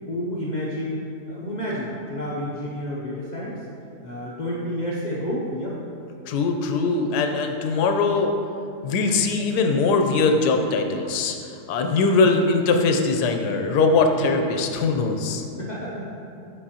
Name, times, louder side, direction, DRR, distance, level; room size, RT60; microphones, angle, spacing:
voice 1, 0.0-1.0 1.3-3.7 4.0-5.8 15.6-16.1, equal, 55° left, -6 dB, 0.5 m, -30 dB
voice 2, 6.3-8.3 8.8-11.4 11.7-15.4, left 3 dB, 80° left, 4 dB, 1.1 m, -21 dB
7.5 x 4.8 x 2.8 m, 2.7 s
omnidirectional pair, 1.7 m